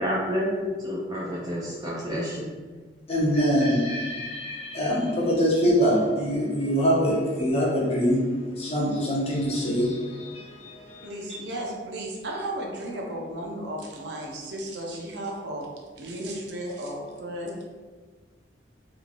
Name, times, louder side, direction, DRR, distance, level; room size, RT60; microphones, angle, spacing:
voice 1, 0.0-2.5, equal, 20° right, -5 dB, 0.3 m, -29 dB
voice 2, 3.1-8.3 8.6-11.1, equal, 35° left, -5 dB, 0.7 m, -24 dB
voice 3, 11.0-15.7 16.0-17.6, right 1 dB, 65° right, -1 dB, 0.6 m, -34 dB
2.9 x 2.6 x 2.6 m, 1.4 s
head